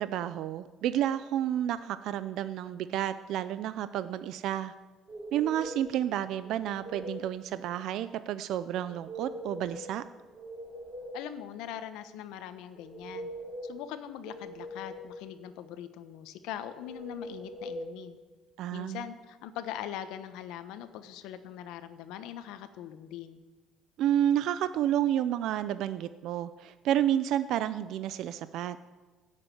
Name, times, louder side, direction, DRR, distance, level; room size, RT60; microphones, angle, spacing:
voice 1, 0.0-4.7 5.3-10.0 18.6-19.0 24.0-28.8, right 11 dB, 65° right, 13 dB, 0.5 m, -30 dB
sound 1, 5.1-5.9 6.4-7.3 8.9-9.9 10.2-11.3 12.7-13.8 14.2-15.2 16.8-17.8, equal, 20° right, 5.1 m, -41 dB
voice 2, 11.1-13.3 13.6-18.2 18.7-23.4, left 10 dB, 85° left, 10 dB, 1.2 m, -41 dB
16.5 x 7.6 x 9.2 m, 1.2 s
cardioid pair, 140°, 0 cm